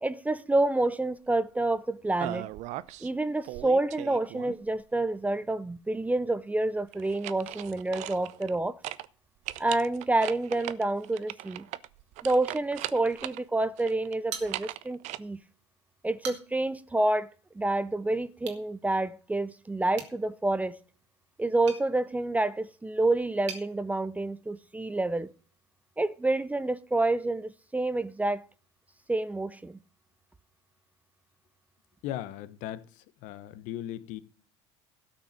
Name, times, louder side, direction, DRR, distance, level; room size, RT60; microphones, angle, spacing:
voice 1, 0.0-2.5 3.0-8.7 9.6-11.7 12.2-15.4 16.0-17.3 17.6-20.8 21.4-25.3 26.0-28.5 29.1-29.8, right 2 dB, 10° right, 0.5 m, -28 dB
sound 1, 2.2-3.1 3.4-4.8 6.9-8.6 8.8-9.1 9.4-13.4 13.8-15.2, right 15 dB, 55° right, 0.6 m, -38 dB
sound 2, 14.3-15.1 15.4-15.5 16.0-16.7 18.4-18.7 19.9-23.7, right 7 dB, 80° right, 2.2 m, -44 dB
voice 2, 32.0-32.8 33.2-34.2, left 12 dB, 60° left, 1.0 m, -37 dB
12.5 x 6.0 x 6.5 m
hypercardioid pair, 80°, 15 cm